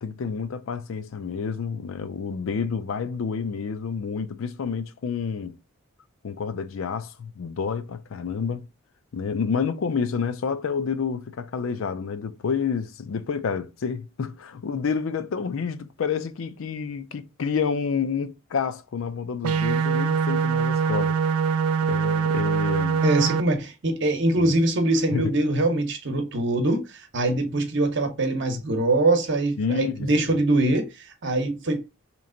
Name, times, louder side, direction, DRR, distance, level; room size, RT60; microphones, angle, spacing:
voice 1, 0.0-5.6 6.2-8.7 9.1-21.2 21.8-23.1 24.4-24.5 25.1-25.3 29.6-30.3, left 6 dB, 70° left, 0.4 m, -29 dB
sound 1, 19.4-23.4, right 6 dB, 85° right, 0.3 m, -23 dB
voice 2, 23.0-31.8, right 2 dB, 55° right, 0.8 m, -23 dB
3.2 x 3.0 x 3.8 m
head